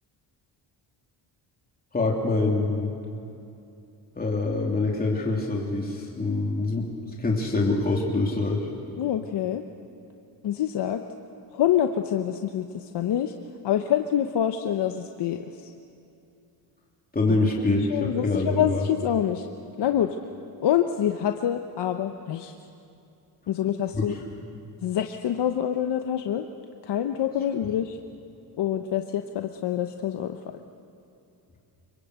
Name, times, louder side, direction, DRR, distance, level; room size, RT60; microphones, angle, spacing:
voice 1, 1.9-3.0 4.2-6.9 7.2-8.7 17.1-18.8 23.9-24.2, left 2 dB, 20° left, -2 dB, 3.0 m, -25 dB
voice 2, 9.0-9.6 10.4-11.0 11.5-13.3 13.6-15.7 17.3-17.4 17.9-19.5 19.8-20.2 20.6-22.5 23.5-24.1 24.8-26.4 26.8-28.0 28.6-30.4, left 10 dB, 70° left, 6 dB, 1.1 m, -26 dB
25.5 x 24.0 x 8.2 m, 2.7 s
cardioid pair, 120°, 43 cm